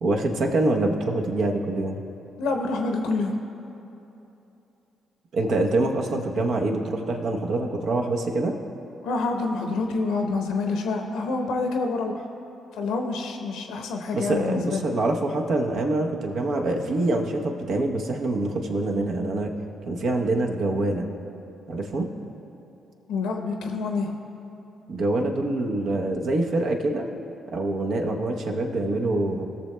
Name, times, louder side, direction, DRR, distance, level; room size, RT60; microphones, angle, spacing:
voice 1, 0.0-2.0 5.3-8.6 14.1-19.5 19.9-21.1 21.7-22.1 24.9-27.1 27.5-29.4, right 2 dB, 65° right, 2 dB, 0.8 m, -25 dB
voice 2, 2.4-3.3 9.0-12.3 12.7-14.8 23.1-24.2, left 3 dB, 75° left, 4 dB, 0.7 m, -27 dB
20.0 x 6.7 x 2.2 m, 2.9 s
hypercardioid pair, 45°, 0 cm